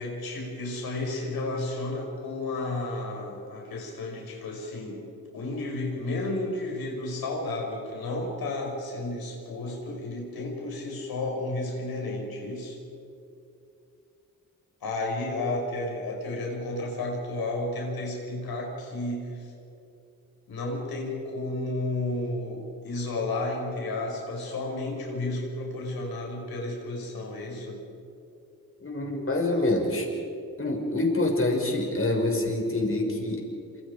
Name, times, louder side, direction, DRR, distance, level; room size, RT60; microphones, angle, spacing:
voice 1, 0.0-5.1 5.3-12.8 14.8-19.5 20.5-27.8, left 2 dB, 85° left, 0 dB, 5.9 m, -32 dB
voice 2, 28.8-30.1 30.6-33.5, left 2 dB, 35° left, 1 dB, 5.9 m, -26 dB
27.0 x 26.5 x 5.1 m, 2.6 s
cardioid pair, 70°, 36 cm